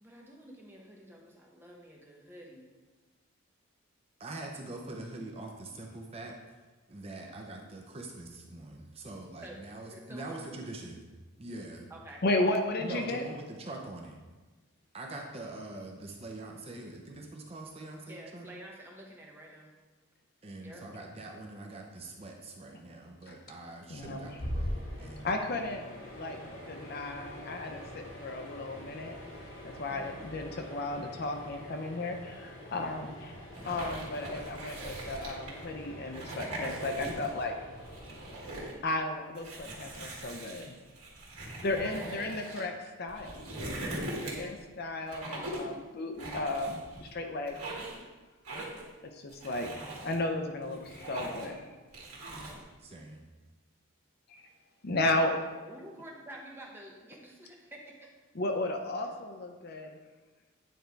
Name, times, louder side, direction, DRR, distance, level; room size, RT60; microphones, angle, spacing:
voice 1, 0.0-2.7 9.4-9.6 9.9-10.6 11.9-12.2 18.1-19.7 20.6-20.8 29.9-30.2 32.7-33.0 41.5-42.3 44.1-44.6 55.6-58.1, right 1 dB, 10° right, -2 dB, 0.9 m, -48 dB
voice 2, 4.2-6.4 6.9-11.0 11.4-11.9 12.8-14.2 14.9-18.5 20.4-25.3 52.8-53.2, right 2 dB, 25° right, 1 dB, 0.5 m, -43 dB
voice 3, 12.2-13.2 23.3-23.4 23.9-24.3 25.2-29.2 29.8-33.3 33.6-37.5 38.8-40.7 41.6-43.4 44.2-47.7 49.1-51.8 54.3-54.4 54.8-55.4 58.4-60.0, left 2 dB, 45° left, 5 dB, 0.5 m, -34 dB
sound 1, 23.9-38.4, equal, 65° left, 2.3 m, -43 dB
sound 2, 33.5-35.6 36.1-37.4 37.8-38.8 39.3-42.6 43.1-44.6 45.1-45.7 46.2-47.1 47.5-48.0 48.4-48.9 49.3-50.2 50.6-51.6 51.9-52.6, right 1 dB, 90° right, 1.8 m, -41 dB
9.2 x 3.3 x 4.5 m, 1.3 s
head